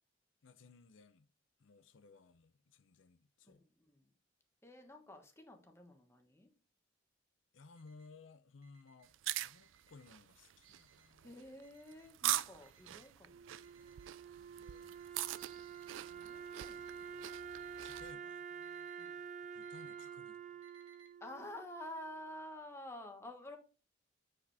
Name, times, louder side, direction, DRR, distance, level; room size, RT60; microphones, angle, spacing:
voice 1, 0.4-1.3 1.6-3.6 7.5-9.1 9.4-11.4 14.1-15.5 15.9-16.4 17.8-18.9 19.5-20.6, left 4 dB, 75° left, 0.6 m, -60 dB
voice 2, 3.4-4.1 4.6-6.5 11.2-13.4 16.0-17.1 19.0-19.3 21.2-23.6, left 1 dB, 15° left, 1.2 m, -50 dB
Alarm, 7.7-8.1 8.6-9.1 9.6-10.1 10.6-11.1 11.6-12.1 12.6-13.1 13.6-14.1 14.6-15.1 15.6-16.1 16.6-17.1 17.6-18.1 18.6-19.1 19.6-20.1 20.6-21.1, right 5 dB, 70° right, 2.0 m, -65 dB
sound 1, 9.0-18.1, right 14 dB, 85° right, 0.4 m, -43 dB
Wind instrument woodwind instrument, 13.3-22.3, right 7 dB, 40° right, 0.6 m, -49 dB
8.3 x 5.2 x 3.4 m
head